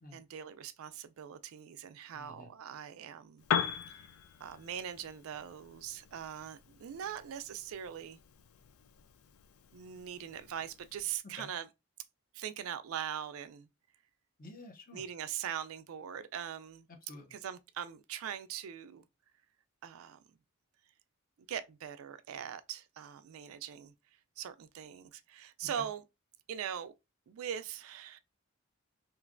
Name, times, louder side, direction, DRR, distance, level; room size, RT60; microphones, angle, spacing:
voice 1, 0.1-3.4 3.9-4.1 4.4-8.2 9.7-11.7 12.3-13.7 14.9-16.9 17.3-19.1 19.8-20.2 21.5-23.9 24.4-26.0 26.5-26.9 27.3-28.2, right 9 dB, 80° right, 0.4 m, -41 dB
voice 2, 2.1-2.5 11.4-11.5 14.4-15.0 17.1-17.4 25.8-25.9, left 2 dB, 40° left, 0.6 m, -50 dB
Piano, 3.4-11.2, left 8 dB, 85° left, 0.3 m, -41 dB
3.0 x 2.5 x 2.5 m
head